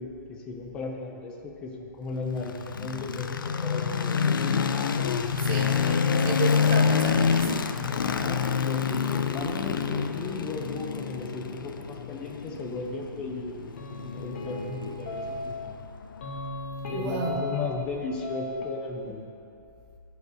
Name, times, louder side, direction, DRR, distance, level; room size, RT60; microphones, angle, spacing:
voice 1, 0.0-4.7 8.0-13.7 14.0-15.8 16.9-19.2, left 3 dB, 10° left, 1 dB, 0.3 m, -36 dB
sound 1, 2.4-16.5, left 6 dB, 75° left, 0.6 m, -27 dB
voice 2, 5.4-7.7 16.9-17.6, right 4 dB, 20° right, 1 dB, 0.9 m, -33 dB
sound 2, 13.7-15.8 16.2-17.9 18.2-18.9, left 2 dB, 35° left, 1.1 m, -36 dB
14.0 x 4.8 x 6.5 m, 2.6 s
hypercardioid pair, 175°, 11 cm